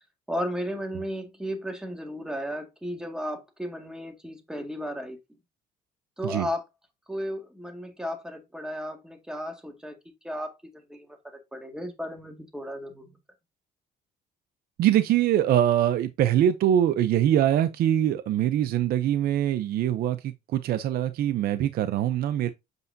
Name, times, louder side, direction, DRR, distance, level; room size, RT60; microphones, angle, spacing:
voice 1, 0.3-5.2 6.2-6.6 7.1-10.0 10.2-11.1 11.5-13.1, equal, 5° right, 1.9 m, -34 dB
voice 2, 14.8-22.5, right 11 dB, 65° right, 0.6 m, -23 dB
8.1 x 5.4 x 2.7 m
cardioid pair, 110°, 17 cm